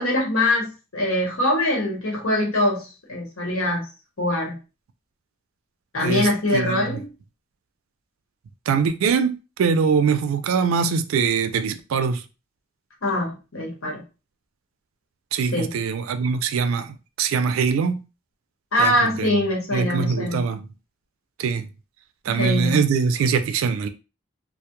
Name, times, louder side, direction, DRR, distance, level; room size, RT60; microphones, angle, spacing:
voice 1, 0.0-3.8 4.2-4.5 5.9-7.1 13.0-14.0 15.5-15.7 18.7-20.4 22.3-22.8, left 1 dB, 80° left, 1.0 m, -23 dB
voice 2, 6.0-6.9 8.7-12.2 15.3-16.9 17.2-18.0 18.8-19.3 19.7-20.7 21.4-21.7 22.3-23.9, right 6 dB, 75° right, 0.3 m, -23 dB
2.2 x 2.0 x 2.8 m
head